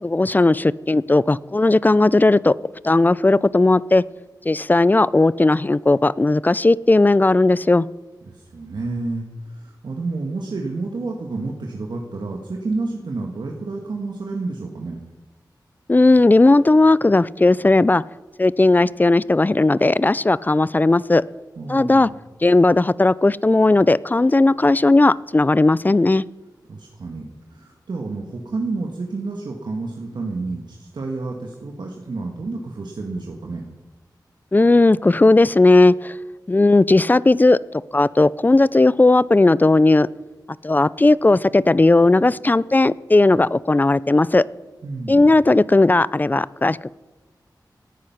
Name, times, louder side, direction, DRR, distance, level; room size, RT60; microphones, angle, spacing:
voice 1, 0.0-2.5 2.8-4.0 4.5-7.9 15.9-18.0 18.4-21.2 21.7-22.1 22.4-26.2 34.5-36.1 36.5-37.6 37.9-40.1 40.6-44.5 45.1-46.9, left 2 dB, 25° left, 20 dB, 0.4 m, -16 dB
voice 2, 8.3-15.0 21.6-22.1 26.7-33.6 44.8-45.3, right 3 dB, 80° right, 1 dB, 1.5 m, -30 dB
17.5 x 9.9 x 5.9 m, 1.2 s
wide cardioid pair, 80°, 8 cm